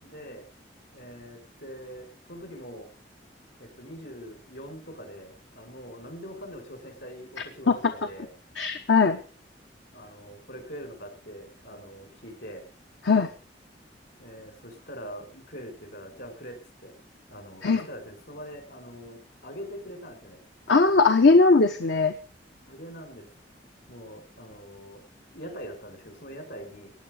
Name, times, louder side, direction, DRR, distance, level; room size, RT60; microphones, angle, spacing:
voice 1, 0.0-0.4 0.9-2.9 3.6-8.3 9.9-12.6 14.2-16.9 17.3-20.4 22.7-23.3 23.9-25.0 25.3-26.9, equal, 65° left, 6 dB, 5.6 m, -43 dB
voice 2, 8.6-9.2 13.0-13.3 17.6-17.9 20.7-22.1, left 3 dB, 85° left, 7 dB, 1.1 m, -19 dB
16.0 x 9.7 x 6.6 m, 0.41 s
head